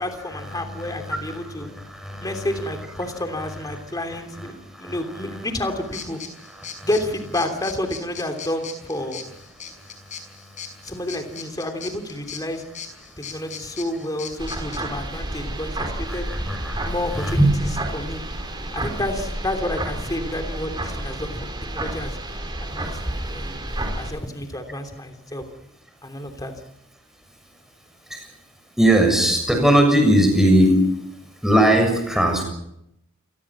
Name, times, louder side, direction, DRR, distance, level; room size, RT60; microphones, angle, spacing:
voice 1, 0.0-1.7 2.2-6.2 6.8-9.2 10.8-12.6 13.2-16.3 16.8-17.5 17.9-18.2 18.7-22.2 22.6-23.6 23.9-25.4 26.0-26.5, left 1 dB, 15° left, 5 dB, 3.1 m, -30 dB
voice 2, 0.7-2.5 4.7-5.0 6.6-6.9 9.8-9.9 10.5-10.6 16.1-17.5 28.1-28.3 28.8-30.8 31.4-32.4, right 1 dB, ahead, 3 dB, 7.0 m, -20 dB
sound 1, 5.9-14.8, left 7 dB, 35° left, 5.6 m, -38 dB
sound 2, 14.4-24.1, right 1 dB, 20° right, 4.6 m, -30 dB
28.5 x 20.5 x 6.1 m, 0.79 s
head